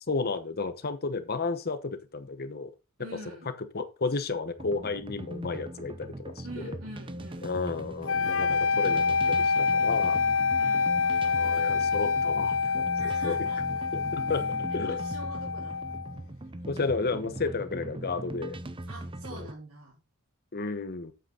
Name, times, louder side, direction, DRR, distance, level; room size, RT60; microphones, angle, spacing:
voice 1, 0.1-2.7 3.7-6.8 7.4-10.2 11.3-12.9 13.2-13.4 14.1-15.0 16.7-18.6 19.3-19.4 20.5-21.1, left 4 dB, 45° left, 11 dB, 1.0 m, -32 dB
voice 2, 3.0-3.5 6.4-7.6 10.6-11.0 13.0-13.6 14.3-14.4 14.7-16.2 18.9-20.0, right 1 dB, 80° right, -6 dB, 3.7 m, -45 dB
Exploration of deep sounds, 4.6-19.5, right 1 dB, 25° right, 0.7 m, -40 dB
sound 1, 8.1-16.1, left 5 dB, 60° left, 0.6 m, -27 dB
8.4 x 8.1 x 3.8 m, 0.27 s
head